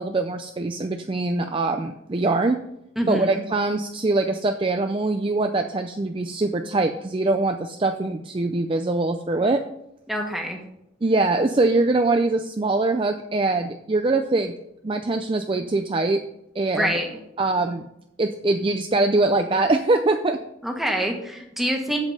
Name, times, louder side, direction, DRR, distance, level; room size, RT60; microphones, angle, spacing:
voice 1, 0.0-2.6 3.1-9.6 11.0-14.5 14.8-16.2 16.6-16.9 17.4-17.9 18.2-20.4, right 2 dB, 25° right, 6 dB, 0.4 m, -23 dB
voice 2, 3.0-3.4 10.1-10.6 16.7-17.2 20.6-22.0, equal, ahead, 1 dB, 1.4 m, -26 dB
8.1 x 7.3 x 5.4 m, 0.81 s
head